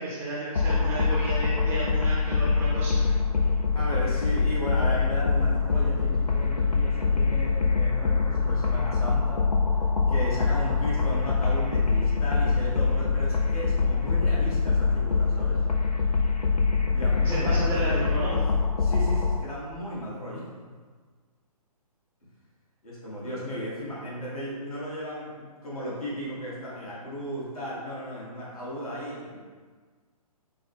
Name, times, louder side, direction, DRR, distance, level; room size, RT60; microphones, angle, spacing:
voice 1, 0.0-3.0 17.2-18.3, right 2 dB, 10° right, -8 dB, 0.5 m, -32 dB
sound 1, 0.6-19.4, left 4 dB, 85° left, 0.5 m, -24 dB
voice 2, 3.7-9.4 10.1-15.6 16.9-18.4 18.8-20.5 22.8-29.4, equal, 65° left, -6 dB, 1.5 m, -35 dB
4.3 x 2.2 x 3.3 m, 1.5 s
figure-of-eight pair, 130°, 20 cm